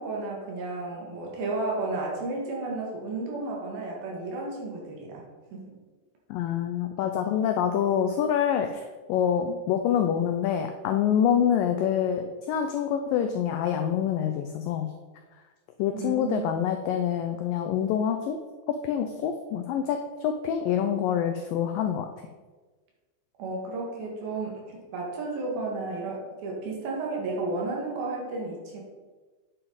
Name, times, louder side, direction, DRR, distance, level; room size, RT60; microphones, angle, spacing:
voice 1, 0.0-5.2 5.5-5.7 15.9-16.5 23.4-28.8, right 3 dB, 65° right, -2 dB, 3.6 m, -33 dB
voice 2, 6.3-8.8 9.1-14.9 15.8-18.4 18.7-22.1, left 8 dB, 90° left, 6 dB, 1.9 m, -26 dB
9.2 x 7.8 x 4.1 m, 1.3 s
omnidirectional pair, 4.6 m